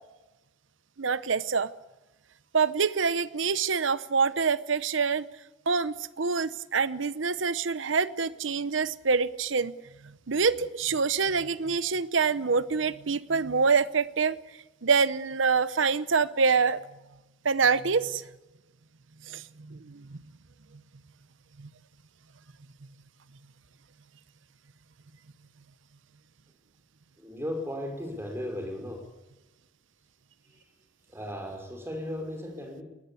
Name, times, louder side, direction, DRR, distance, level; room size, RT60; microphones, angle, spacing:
voice 1, 1.0-1.7 2.5-5.3 5.7-9.7 10.3-14.4 14.8-16.8 17.4-18.2 19.3-20.2 21.6-21.7, right 5 dB, 75° right, 15 dB, 0.8 m, -26 dB
voice 2, 27.2-29.1 30.5-30.6 31.1-32.8, left 1 dB, 15° right, 4 dB, 5.1 m, -36 dB
22.5 x 19.5 x 8.4 m, 1.1 s
head